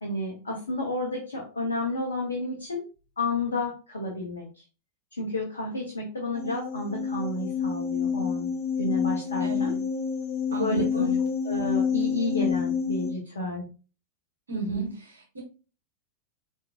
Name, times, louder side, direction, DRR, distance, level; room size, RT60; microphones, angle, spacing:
voice 1, 0.0-2.8 3.2-4.6 5.2-8.5 8.8-9.7 10.5-11.1 11.4-13.6 14.5-14.9, left 2 dB, 70° left, -1 dB, 1.1 m, -31 dB
sound 1, 6.3-13.1, left 6 dB, 55° left, 1.5 m, -28 dB
voice 2, 9.4-9.8 10.5-11.2 14.5-15.4, right 6 dB, 75° right, -5 dB, 1.3 m, -37 dB
5.0 x 3.6 x 2.5 m, 0.35 s
figure-of-eight pair, 90°, 0 cm